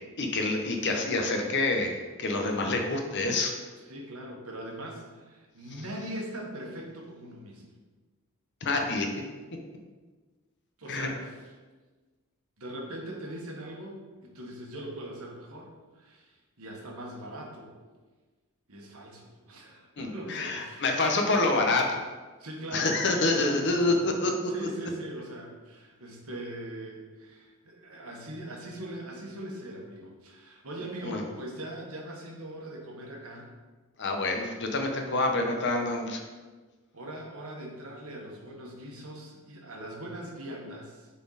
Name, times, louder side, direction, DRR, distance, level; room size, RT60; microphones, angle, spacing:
voice 1, 0.2-3.5 8.6-9.1 10.9-11.1 20.0-22.0 22.7-24.7 31.0-31.2 34.0-36.2, left 2 dB, 55° left, 3 dB, 0.9 m, -27 dB
voice 2, 3.8-7.6 10.8-11.3 12.6-17.7 18.7-21.1 22.4-23.0 23.3-24.0 24.5-33.5 35.2-35.4 36.9-41.1, right 1 dB, 70° right, -1 dB, 1.4 m, -41 dB
6.9 x 4.3 x 4.0 m, 1.3 s
head